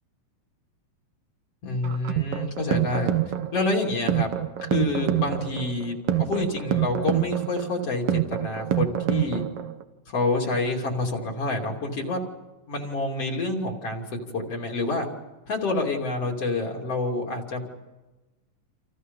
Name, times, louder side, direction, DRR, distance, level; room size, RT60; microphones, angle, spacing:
voice 1, 1.6-3.1 3.5-4.3 4.6-9.4 10.1-12.2 12.7-14.1 14.3-15.1 15.5-17.6, left 2 dB, 50° left, 0 dB, 3.8 m, -28 dB
sound 1, 1.8-9.8, right 12 dB, 60° right, 1.8 m, -26 dB
29.5 x 28.0 x 5.5 m, 1.1 s
omnidirectional pair, 3.8 m